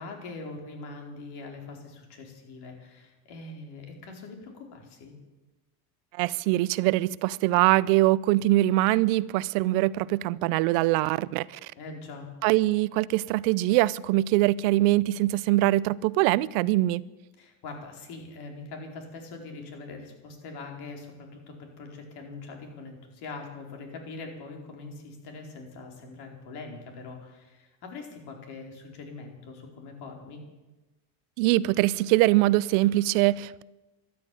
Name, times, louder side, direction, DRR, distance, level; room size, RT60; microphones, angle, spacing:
voice 1, 0.0-5.1 11.8-12.3 17.4-30.4, left 3 dB, 65° left, 4.4 m, -42 dB
voice 2, 6.2-11.7 12.4-17.1 31.4-33.6, right 17 dB, 90° right, 0.7 m, -23 dB
13.0 x 12.5 x 9.1 m
cardioid pair, 125°, 42 cm